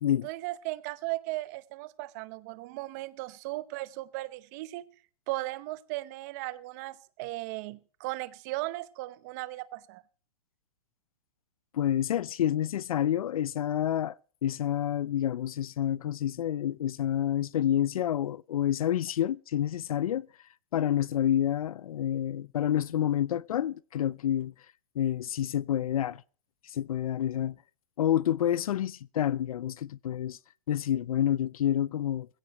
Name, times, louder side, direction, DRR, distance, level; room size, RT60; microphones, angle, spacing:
voice 1, 0.2-4.8 5.3-10.0, right 19 dB, 30° right, 0.8 m, -37 dB
voice 2, 11.7-20.3 20.7-24.5 25.0-26.2 26.6-27.6 28.0-30.4 30.7-32.3, left 11 dB, 75° left, 0.6 m, -28 dB
20.0 x 16.5 x 3.0 m
hypercardioid pair, 165°, 18 cm